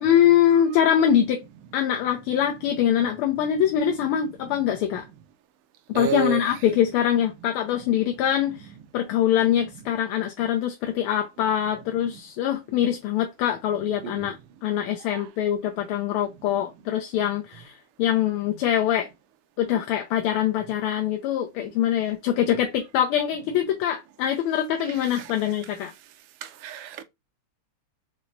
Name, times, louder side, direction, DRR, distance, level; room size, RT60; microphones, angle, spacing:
voice 1, 0.0-1.4 1.7-5.0 5.9-8.7 8.9-14.4 14.6-19.1 19.6-25.9, left 10 dB, 80° left, 1.5 m, -23 dB
voice 2, 5.9-6.4 14.2-14.3 26.6-27.0, right 8 dB, 90° right, 1.6 m, -28 dB
5.7 x 2.0 x 2.5 m
omnidirectional pair, 2.4 m